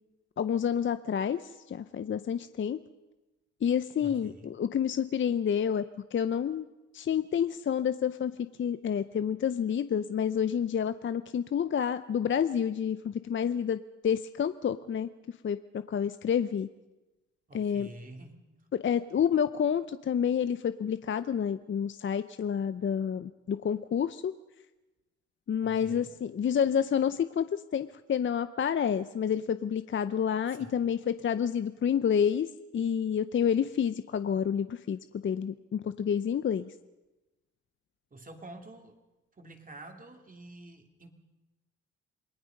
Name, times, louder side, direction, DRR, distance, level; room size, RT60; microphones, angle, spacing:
voice 1, 0.4-2.8 3.6-6.7 6.9-15.1 15.4-16.7 17.5-17.9 18.7-24.3 25.5-32.5 32.7-36.7, left 8 dB, 40° left, 12 dB, 0.7 m, -29 dB
voice 2, 4.0-4.6 17.5-18.4 25.6-26.1 30.5-30.7 38.1-39.0 39.4-41.1, right 2 dB, 25° right, 4 dB, 3.2 m, -48 dB
28.0 x 19.0 x 5.4 m, 1.1 s
cardioid pair, 90°, 30 cm